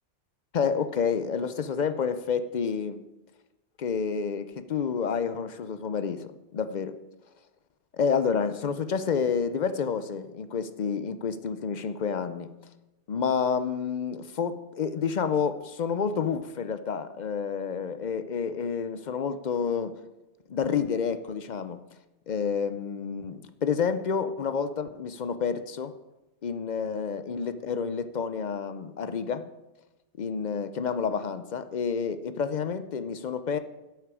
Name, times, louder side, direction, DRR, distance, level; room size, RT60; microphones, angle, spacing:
voice 1, 0.5-3.0 3.8-7.0 7.9-12.6 13.1-19.9 20.5-21.8 22.3-25.9 26.4-29.5 30.2-33.6, left 6 dB, 50° left, 11 dB, 0.6 m, -29 dB
12.5 x 8.0 x 4.9 m, 1.0 s
omnidirectional pair, 1.2 m